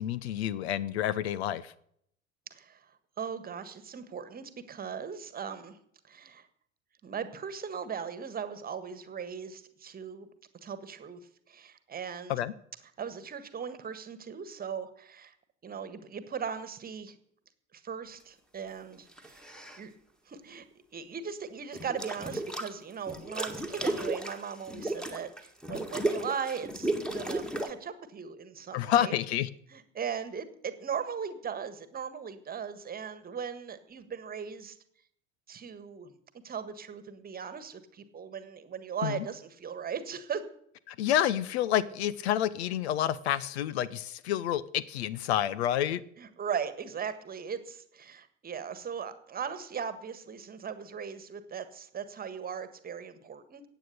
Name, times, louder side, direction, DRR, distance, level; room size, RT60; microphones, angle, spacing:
voice 1, 0.0-1.7 12.3-12.5 28.7-29.5 39.0-39.3 40.9-46.0, left 11 dB, 60° left, 20 dB, 0.8 m, -29 dB
voice 2, 3.2-5.8 6.1-6.5 7.0-10.3 10.6-11.2 11.5-12.3 13.0-15.3 15.6-17.2 17.7-19.4 19.7-19.9 20.3-20.6 20.9-29.2 29.7-34.8 35.5-36.1 36.4-40.4 46.2-53.6, right 7 dB, 25° right, 12 dB, 1.6 m, -38 dB
sound 1, 19.1-19.8 21.7-22.7 23.1-27.7, right 2 dB, ahead, 1.8 m, -34 dB
15.0 x 9.2 x 6.7 m, 0.69 s
figure-of-eight pair, 70°, 37 cm